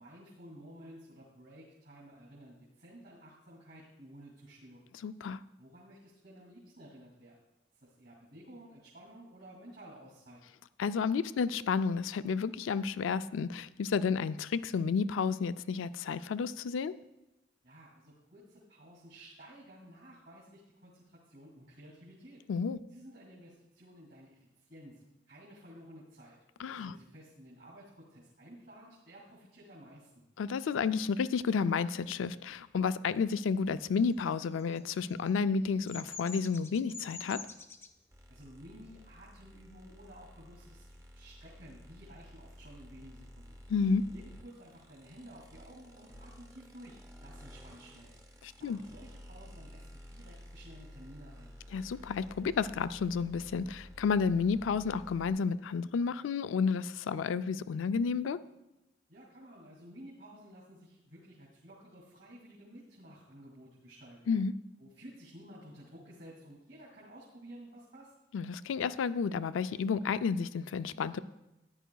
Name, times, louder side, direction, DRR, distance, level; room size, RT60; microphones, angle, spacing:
voice 1, 0.0-4.9 5.6-7.4 7.7-10.4 17.6-22.4 22.9-26.4 26.8-30.3 38.3-43.6 44.1-48.1 48.6-51.6 59.1-64.2 64.8-68.1, right 1 dB, 55° right, -5 dB, 2.4 m, -53 dB
voice 2, 5.0-5.4 10.8-16.9 22.5-22.8 26.6-26.9 30.4-37.4 43.7-44.0 48.4-48.8 51.7-58.4 64.3-64.5 68.3-71.2, left 5 dB, 80° left, 14 dB, 0.4 m, -31 dB
Bird vocalization bird call bird song, 34.3-37.9, left 4 dB, 10° left, 0.3 m, -46 dB
sound 1, 38.1-55.3, equal, 15° right, 0.8 m, -52 dB
14.0 x 10.0 x 2.3 m, 0.95 s
head